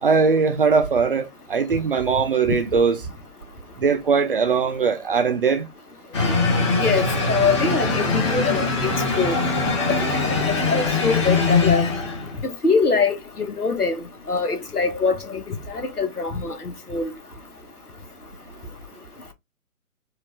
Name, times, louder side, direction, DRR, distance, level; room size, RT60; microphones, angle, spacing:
voice 1, 0.0-3.0 3.8-5.7, right 5 dB, 40° right, 0.6 m, -20 dB
sound 1, 6.1-12.4, left 3 dB, 20° left, 0.9 m, -22 dB
voice 2, 6.8-9.4 10.1-11.8 12.6-13.9 14.3-16.6 16.9-17.1, left 4 dB, 85° left, 1.2 m, -23 dB
4.5 x 2.6 x 2.6 m
figure-of-eight pair, 135°, 44 cm